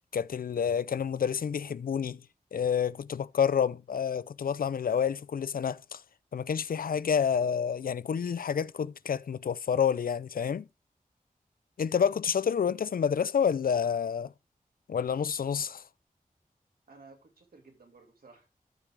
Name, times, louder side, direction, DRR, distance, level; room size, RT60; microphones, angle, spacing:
voice 1, 0.1-2.2 2.5-6.0 6.3-10.7 11.8-14.3 14.9-15.8, left 7 dB, 75° left, 0.4 m, -29 dB
voice 2, 16.9-18.5, right 3 dB, 85° right, 2.6 m, -55 dB
13.5 x 4.6 x 3.6 m
wide cardioid pair, 60°, 15 cm